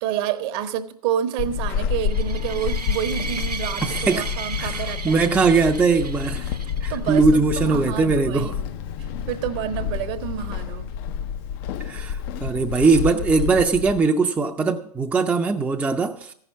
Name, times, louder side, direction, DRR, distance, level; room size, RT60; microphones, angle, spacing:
voice 1, 0.0-5.2 6.9-8.8 9.3-10.9, right 10 dB, 40° right, 0.9 m, -28 dB
Walk footsteps / Squeak, 1.4-14.0, left 7 dB, 40° left, 0.5 m, -29 dB
sound 1, 1.9-7.2, right 5 dB, 90° right, 0.8 m, -35 dB
voice 2, 3.8-4.3 4.6-4.7 5.0-6.5 6.8-8.5 11.8-16.3, right 4 dB, 10° right, 0.6 m, -20 dB
14.5 x 5.8 x 7.2 m
figure-of-eight pair, 105°, 20 cm